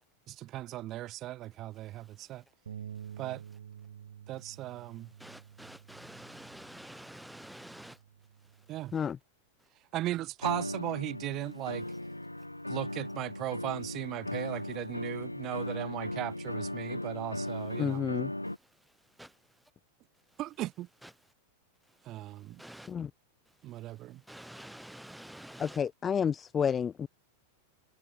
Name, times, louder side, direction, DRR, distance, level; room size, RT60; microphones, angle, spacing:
voice 1, 0.3-2.4 3.2-3.4 4.3-5.1 8.7-8.9 9.9-11.9 12.7-18.1 20.4-20.9 22.0-22.6 23.6-24.2, right 15 dB, 35° right, 1.0 m, -37 dB
voice 2, 1.8-2.4 3.0-3.2 4.9-8.0 8.4-8.8 17.8-18.0 18.5-19.7 20.3-20.4 21.0-21.1 21.9-22.9 23.5-25.8, right 1 dB, ahead, 1.3 m, -51 dB
sound 1, 2.7-8.9, right 8 dB, 65° right, 1.2 m, -49 dB
sound 2, 10.4-18.6, left 1 dB, 85° left, 0.8 m, -37 dB
voice 3, 17.8-18.3 22.9-23.1 25.6-27.1, left 7 dB, 20° left, 0.4 m, -30 dB
figure-of-eight pair, 90°, 0 cm